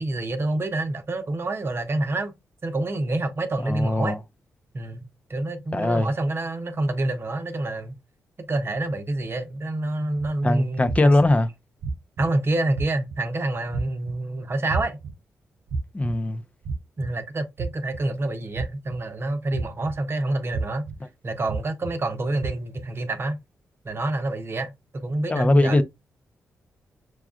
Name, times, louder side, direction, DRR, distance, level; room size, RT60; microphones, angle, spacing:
voice 1, 0.0-2.3 2.6-4.2 4.7-7.9 8.4-11.1 12.2-15.0 17.0-20.8 21.2-23.4 23.8-25.8, right 2 dB, 45° right, 0.8 m, -27 dB
voice 2, 3.6-4.2 5.7-6.1 10.4-11.5 15.9-16.4 25.3-25.8, left 2 dB, 25° left, 0.6 m, -20 dB
sound 1, 10.2-10.3 10.9-11.3 11.8-12.3 12.7-13.2 13.7-14.1 14.7-15.1 15.7-16.1 16.6-17.1 17.6-18.0 18.5-19.0 19.5-19.9 20.5-20.9 21.5-21.9 22.4-22.8, right 4 dB, 85° right, 0.5 m, -30 dB
6.1 x 2.3 x 2.4 m
cardioid pair, 55°, 6 cm